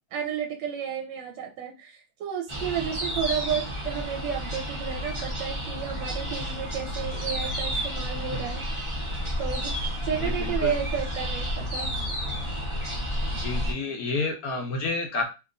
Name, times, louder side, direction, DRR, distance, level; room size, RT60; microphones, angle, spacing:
voice 1, 0.1-8.9 9.4-9.7 10.0-11.9, right 8 dB, 75° right, 2 dB, 1.2 m, -32 dB
sound 1, 2.5-13.7, equal, 35° right, 0.4 m, -31 dB
voice 2, 10.2-10.8 13.4-15.2, left 3 dB, 70° left, 2 dB, 0.9 m, -30 dB
2.9 x 2.9 x 2.5 m, 0.29 s
omnidirectional pair, 2.2 m